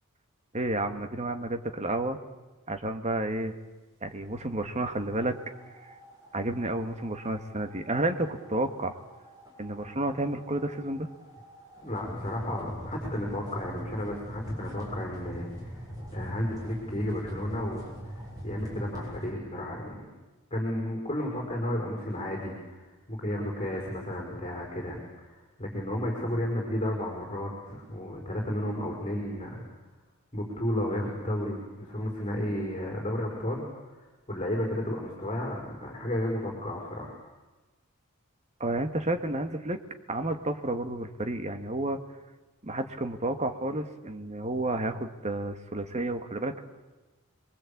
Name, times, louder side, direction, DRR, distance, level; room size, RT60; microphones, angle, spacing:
voice 1, 0.5-2.2 2.7-3.6 4.0-5.4 6.3-8.9 9.6-11.1 38.6-39.8 40.1-42.0 42.6-46.6, right 2 dB, 30° right, 7 dB, 1.8 m, -31 dB
sound 1, 4.9-19.3, equal, 15° right, 7.7 m, -43 dB
voice 2, 11.8-20.0 20.5-29.6 30.3-37.2, left 1 dB, 25° left, 0 dB, 5.3 m, -33 dB
27.5 x 22.5 x 8.7 m, 1.2 s
head